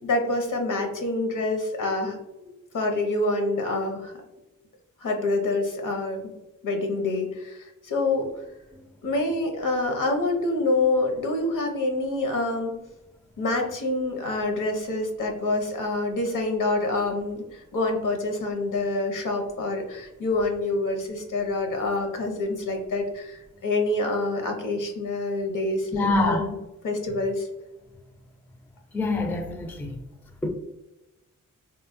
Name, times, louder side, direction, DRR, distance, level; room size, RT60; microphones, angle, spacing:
voice 1, 0.0-2.5 2.7-4.1 5.0-6.3 6.6-8.3 9.0-12.7 13.4-26.6 26.8-27.5, left 2 dB, 70° left, 0.7 m, -26 dB
voice 2, 25.9-26.4 28.9-30.0 30.4-30.5, left 2 dB, 5° left, 0.3 m, -25 dB
3.1 x 2.1 x 2.5 m
cardioid pair, 70°, 33 cm